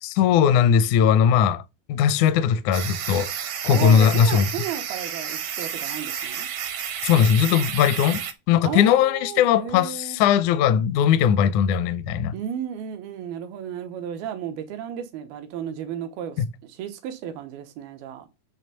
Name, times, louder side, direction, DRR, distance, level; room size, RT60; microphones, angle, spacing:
voice 1, 0.0-1.6 1.9-3.3 3.6-4.4 7.0-8.2 8.5-12.3 16.4-16.5, left 8 dB, 75° left, 1.8 m, -19 dB
sound 1, 2.7-8.3, right 8 dB, 70° right, 1.4 m, -31 dB
voice 2, 3.7-6.5 8.6-10.2 12.3-18.3, right 9 dB, 90° right, 2.9 m, -33 dB
8.8 x 3.4 x 6.7 m
omnidirectional pair, 4.2 m